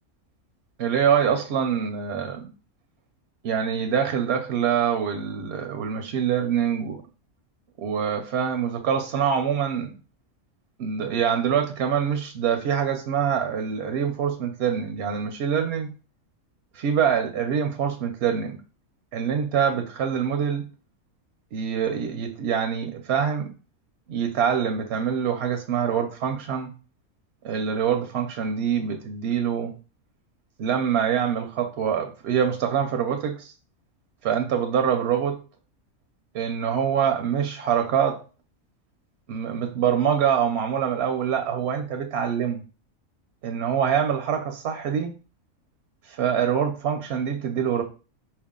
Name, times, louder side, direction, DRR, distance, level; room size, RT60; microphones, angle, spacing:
voice 1, 0.8-2.5 3.4-7.0 7.8-10.0 10.8-15.9 16.7-18.6 19.1-20.6 21.5-23.5 24.1-26.7 27.4-29.7 30.6-33.5 34.2-35.4 36.3-38.2 39.3-42.6 43.4-45.2 46.1-47.8, right 8 dB, 65° right, 0.7 m, -25 dB
4.5 x 2.7 x 3.6 m
omnidirectional pair, 1.4 m